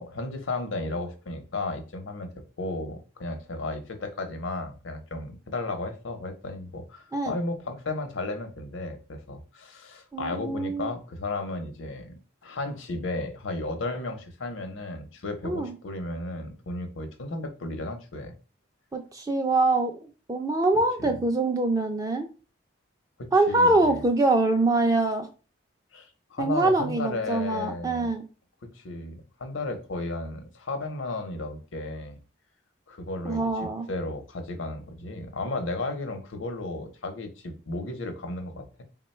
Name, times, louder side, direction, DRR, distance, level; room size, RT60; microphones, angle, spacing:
voice 1, 0.0-12.1 12.4-18.3 23.2-24.0 25.9-28.1 28.7-32.2 32.9-38.8, left 2 dB, 85° left, 7 dB, 0.7 m, -34 dB
voice 2, 10.1-10.9 15.4-15.7 18.9-22.3 23.3-25.3 26.4-28.2 33.2-33.9, right 2 dB, 20° right, 5 dB, 0.3 m, -24 dB
3.7 x 2.2 x 4.2 m, 0.34 s
head